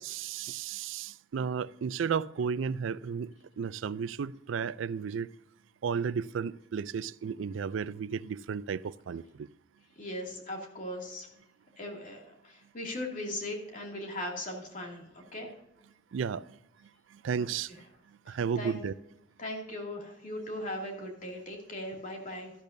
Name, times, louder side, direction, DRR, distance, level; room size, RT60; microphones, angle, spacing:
voice 1, 0.0-5.3 5.8-9.5 16.1-16.6 17.1-17.7 18.3-18.9, right 6 dB, 85° right, 0.4 m, -33 dB
voice 2, 10.0-11.3 11.8-15.5 18.3-18.8 19.4-22.5, left 1 dB, 45° left, 2.5 m, -39 dB
12.5 x 12.0 x 2.7 m
head